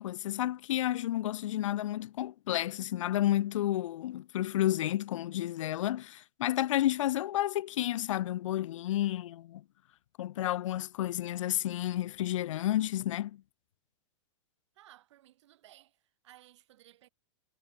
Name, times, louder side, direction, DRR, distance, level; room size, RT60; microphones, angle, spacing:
voice 1, 0.0-9.6 10.2-13.4, left 13 dB, 80° left, 0.4 m, -31 dB
voice 2, 14.7-17.1, right 14 dB, 65° right, 7.9 m, -58 dB
hypercardioid pair, 145°, 16 cm